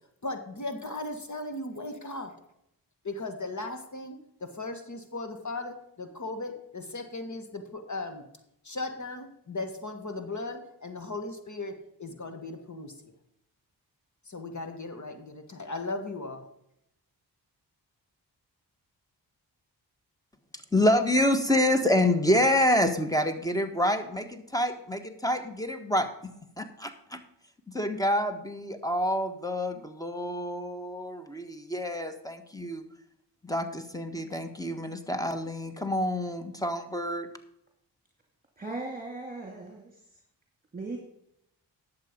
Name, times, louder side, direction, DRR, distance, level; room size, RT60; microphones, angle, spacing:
voice 1, 0.2-2.3 3.0-8.2 8.7-12.9 14.3-16.4, left 2 dB, 45° left, 1.8 m, -37 dB
voice 2, 20.7-26.1 26.6-27.2 27.7-32.8 33.4-37.3, left 1 dB, 10° left, 1.5 m, -27 dB
voice 3, 38.6-39.9 40.7-41.0, right 2 dB, 20° right, 2.5 m, -37 dB
11.0 x 7.6 x 5.3 m
cardioid pair, 55°, 42 cm